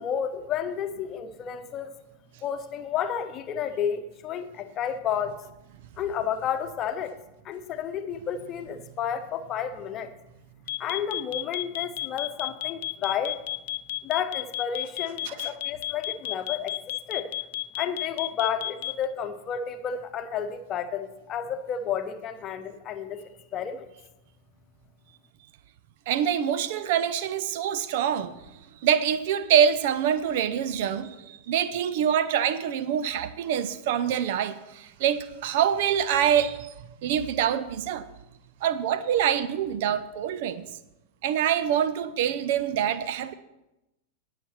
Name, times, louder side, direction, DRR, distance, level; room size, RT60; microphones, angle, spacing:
voice 1, 0.0-1.9 2.4-5.4 6.0-7.1 7.4-10.1 10.8-13.4 14.0-16.8 17.1-17.3 17.8-23.2 23.5-23.9, left 8 dB, 30° left, 1.0 m, -31 dB
sound 1, 10.7-19.0, left 14 dB, 55° left, 0.5 m, -31 dB
voice 2, 26.1-28.3 28.8-36.7 37.0-38.1 38.6-40.7 41.2-43.3, right 9 dB, 50° right, 0.7 m, -25 dB
18.5 x 6.8 x 4.4 m
figure-of-eight pair, 90°, 0 cm